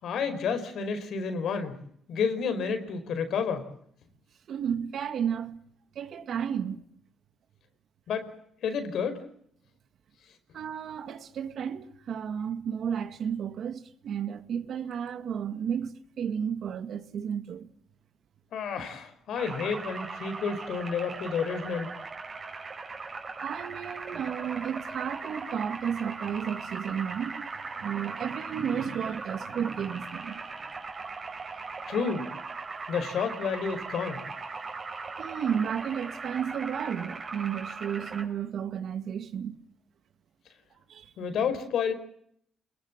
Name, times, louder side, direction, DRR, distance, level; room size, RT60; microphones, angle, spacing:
voice 1, 0.0-1.8 2.1-3.7 8.1-8.3 8.6-9.2 18.5-21.9 31.8-32.3 32.9-34.2 41.2-41.9, left 6 dB, 70° left, 5.0 m, -30 dB
voice 2, 4.5-5.6 6.0-6.8 10.5-17.7 23.4-27.5 27.8-30.4 35.2-39.6 40.9-41.1, right 8 dB, 65° right, 2.1 m, -32 dB
sound 1, 19.3-38.3, right 4 dB, 40° right, 5.8 m, -39 dB
28.5 x 21.5 x 7.5 m
cardioid pair, 90°, 0 cm